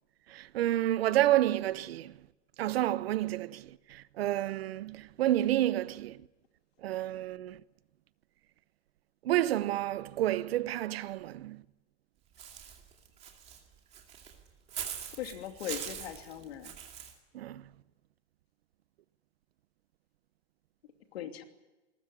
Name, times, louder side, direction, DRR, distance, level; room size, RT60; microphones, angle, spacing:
voice 1, 0.3-2.1 2.6-6.2 6.8-7.6 9.2-11.6 17.3-17.6, right 14 dB, 55° right, 0.8 m, -30 dB
Walk footsteps / Bird, 12.4-17.1, right 8 dB, 20° right, 2.4 m, -42 dB
voice 2, 15.2-16.8 21.1-21.4, left 10 dB, 60° left, 2.9 m, -39 dB
21.0 x 20.0 x 9.7 m
supercardioid pair, 175°, 35 cm